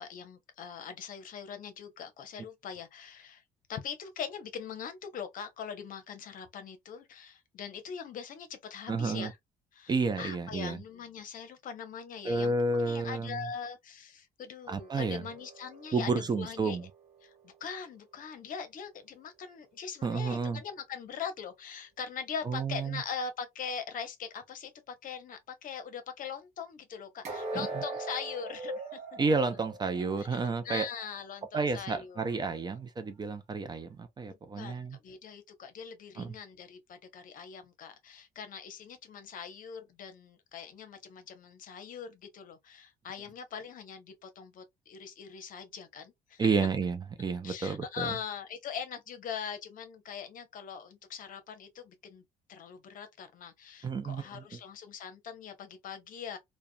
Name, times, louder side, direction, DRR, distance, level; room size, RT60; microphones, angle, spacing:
voice 1, 0.0-3.4 3.7-9.4 9.7-12.5 12.8-16.9 17.2-29.0 30.2-32.7 34.3-46.4 47.4-52.2 52.5-56.4, left 7 dB, 55° left, 0.7 m, -42 dB
voice 2, 8.9-9.3 9.9-10.8 12.2-13.4 14.7-15.2 15.9-16.9 20.0-20.6 22.5-23.0 27.5-27.7 29.2-30.9 31.5-35.0 36.2-36.3 46.4-48.1 53.8-54.4, right 4 dB, 25° right, 0.4 m, -31 dB
sound 1, 14.8-17.9 27.2-31.2 31.5-31.7 32.3-32.4, right 3 dB, 40° right, 0.9 m, -42 dB
2.3 x 2.1 x 2.5 m
cardioid pair, 110°, 17 cm